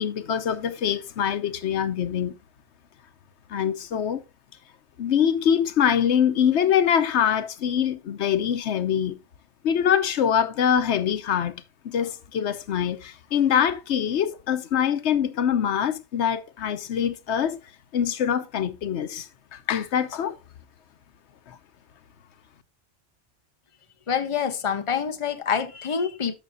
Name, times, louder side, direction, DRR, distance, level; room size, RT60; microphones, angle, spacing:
voice 1, 0.0-2.3 3.5-4.2 5.0-9.2 9.6-17.6 17.9-20.4 21.5-21.6, left 8 dB, 85° left, 1.0 m, -24 dB
voice 2, 24.1-26.3, left 7 dB, 30° left, 0.9 m, -26 dB
13.5 x 6.0 x 2.6 m
omnidirectional pair, 1.1 m